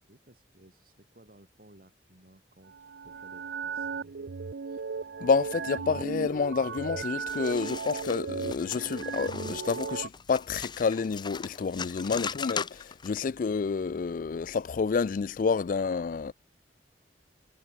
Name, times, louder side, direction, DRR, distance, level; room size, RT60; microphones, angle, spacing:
voice 1, 0.0-4.4 12.2-12.5 13.3-13.4, right 1 dB, 50° right, 4.3 m, -58 dB
sound 1, 2.7-10.1, right 5 dB, 75° right, 0.6 m, -36 dB
voice 2, 5.2-12.7 13.0-16.3, left 5 dB, 45° left, 0.3 m, -29 dB
sound 2, 7.3-13.2, left 6 dB, 25° left, 0.9 m, -39 dB
head